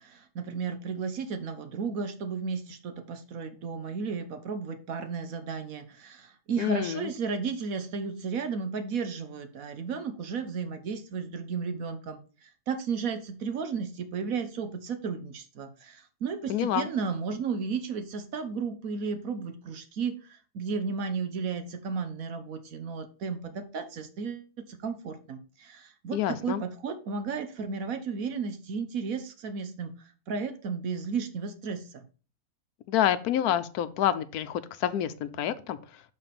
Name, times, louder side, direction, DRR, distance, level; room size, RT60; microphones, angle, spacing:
voice 1, 0.0-32.0, right 5 dB, 65° right, 8 dB, 1.3 m, -34 dB
voice 2, 6.6-7.1 16.5-16.9 26.1-26.6 32.9-36.0, left 11 dB, 75° left, 12 dB, 1.1 m, -28 dB
7.0 x 4.2 x 5.7 m, 0.36 s
omnidirectional pair, 1.6 m